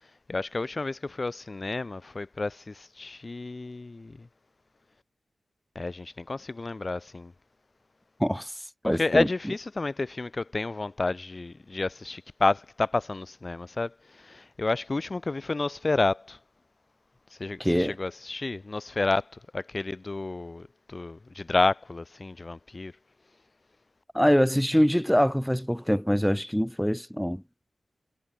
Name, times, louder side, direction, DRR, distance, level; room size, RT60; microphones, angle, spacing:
voice 1, 0.3-4.3 5.8-7.3 8.9-16.4 17.4-19.3 19.5-22.9, left 3 dB, 30° left, 3.9 m, -30 dB
voice 2, 8.2-8.5 8.8-9.3 17.6-18.0 24.1-27.4, equal, ahead, 7.2 m, -24 dB
wide cardioid pair, 135°, 0 cm